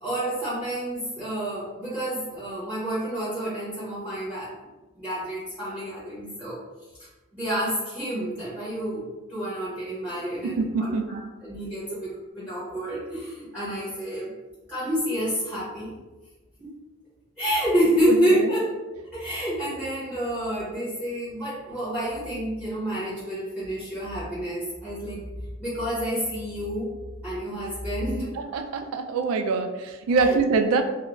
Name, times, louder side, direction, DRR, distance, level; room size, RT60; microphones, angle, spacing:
voice 1, 0.0-4.5 5.0-6.6 7.3-9.0 9.3-14.3 14.7-15.9 16.6-16.7 17.4-18.6 19.1-25.2 25.6-26.9 27.2-28.3 30.1-30.4, equal, 10° left, -11 dB, 0.8 m, -28 dB
voice 2, 10.4-11.2 11.9-12.0 18.1-18.5 28.4-30.8, right 4 dB, 80° right, 6 dB, 0.3 m, -25 dB
2.4 x 2.1 x 3.0 m, 1.1 s
head